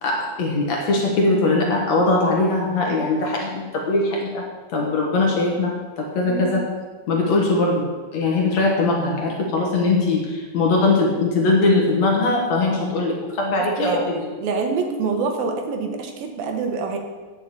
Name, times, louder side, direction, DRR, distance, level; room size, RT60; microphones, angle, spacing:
voice 1, 0.0-4.4 4.7-6.7 7.1-7.9 8.1-14.1, left 2 dB, 60° left, 0 dB, 2.2 m, -21 dB
voice 2, 6.3-6.6 13.8-14.0 14.4-17.0, right 4 dB, 80° right, 4 dB, 3.0 m, -25 dB
9.4 x 6.6 x 8.3 m, 1.4 s
omnidirectional pair, 4.2 m